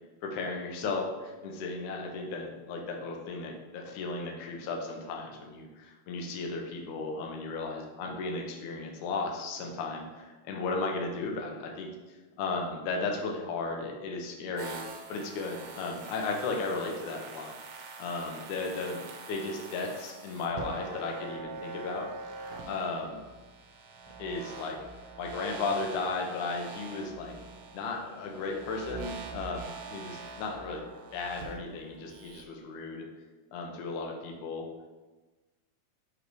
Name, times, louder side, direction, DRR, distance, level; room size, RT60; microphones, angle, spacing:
voice 1, 0.2-14.8 15.1-17.6 18.0-22.3 22.7-23.2 24.2-24.8 25.2-27.3 27.7-30.8 31.1-33.0 33.5-34.6, left 3 dB, 80° left, 1 dB, 1.7 m, -35 dB
sound 1, 14.6-32.4, right 4 dB, 85° right, 2.8 m, -44 dB
7.5 x 3.3 x 4.6 m, 1.2 s
omnidirectional pair, 4.6 m